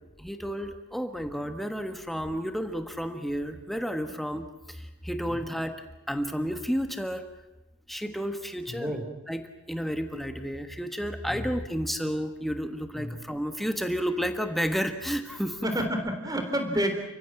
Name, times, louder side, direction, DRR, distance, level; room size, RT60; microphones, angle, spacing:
voice 1, 0.2-4.4 5.0-5.7 6.1-7.2 7.9-8.9 9.3-9.4 9.7-15.6 16.7-16.8, equal, ahead, 7 dB, 1.4 m, -31 dB
voice 2, 8.8-9.1 11.3-11.5 13.0-13.2 15.6-16.9, equal, 15° right, 5 dB, 3.8 m, -29 dB
30.0 x 16.0 x 9.0 m, 1.0 s
head